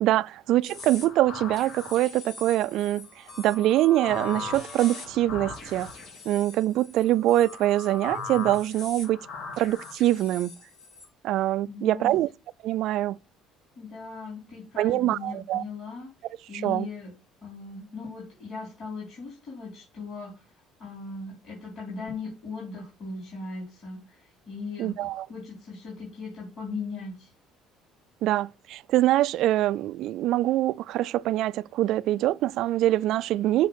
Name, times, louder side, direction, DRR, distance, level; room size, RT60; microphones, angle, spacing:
voice 1, 0.0-3.1 3.4-5.9 6.3-9.2 9.6-10.5 11.2-12.3 12.6-13.2 14.8-15.6 16.5-16.9 24.8-25.3 28.2-33.7, right 14 dB, 60° right, 0.3 m, -24 dB
sound 1, 0.6-11.0, left 4 dB, 65° left, 3.4 m, -39 dB
voice 2, 11.6-12.2 13.8-16.1 16.5-17.1 17.4-20.5 20.8-27.3, left 4 dB, 45° left, 3.6 m, -38 dB
6.5 x 5.1 x 6.4 m
cardioid pair, 155°, 0 cm